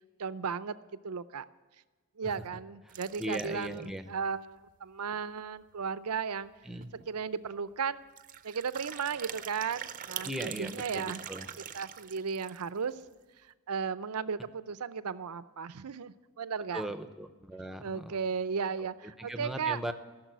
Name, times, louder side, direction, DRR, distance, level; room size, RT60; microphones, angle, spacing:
voice 1, 0.2-0.8 1.0-1.4 2.2-6.5 7.1-8.0 8.4-11.2 11.7-12.9 13.7-16.9 17.8-19.8, right 6 dB, 85° right, 15 dB, 0.6 m, -35 dB
voice 2, 2.9-4.1 6.6-6.9 10.2-11.5 16.7-18.2 19.2-19.9, equal, ahead, 8 dB, 0.7 m, -39 dB
sound 1, 2.9-3.8 4.3-4.4 4.6-4.7 5.1-5.2 6.4-6.5 6.8-7.1 8.1-12.8, right 9 dB, 35° right, 0.5 m, -43 dB
15.0 x 6.9 x 9.3 m, 1.3 s
head